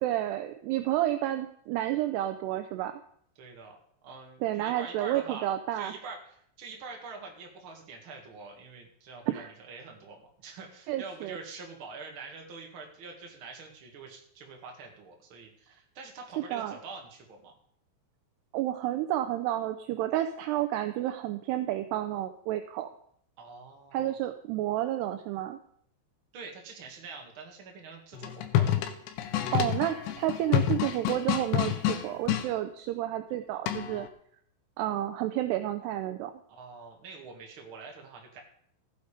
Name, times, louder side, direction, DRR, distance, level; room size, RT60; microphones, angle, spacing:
voice 1, 0.0-3.0 4.4-5.9 9.3-9.5 10.9-11.4 16.4-16.7 18.5-22.9 23.9-25.6 29.5-34.1 34.8-36.3, right 13 dB, 80° right, 8 dB, 2.5 m, -30 dB
voice 2, 3.4-3.8 4.0-17.5 23.4-24.2 26.3-28.8 36.5-38.4, right 4 dB, 40° right, 1 dB, 2.2 m, -45 dB
sound 1, 28.1-32.5 33.7-34.1, left 11 dB, 75° left, 3.2 m, -28 dB
15.0 x 8.1 x 5.1 m, 0.65 s
omnidirectional pair, 5.3 m